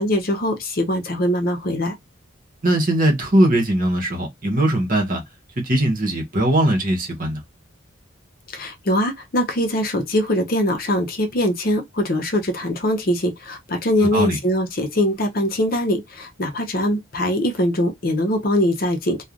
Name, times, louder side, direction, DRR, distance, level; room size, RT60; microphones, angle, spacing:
voice 1, 0.0-1.9 8.5-19.2, equal, 45° left, 0.7 m, -22 dB
voice 2, 2.6-5.2 5.6-7.4 14.1-14.4, right 1 dB, 40° right, 1.0 m, -20 dB
3.1 x 2.3 x 2.5 m
head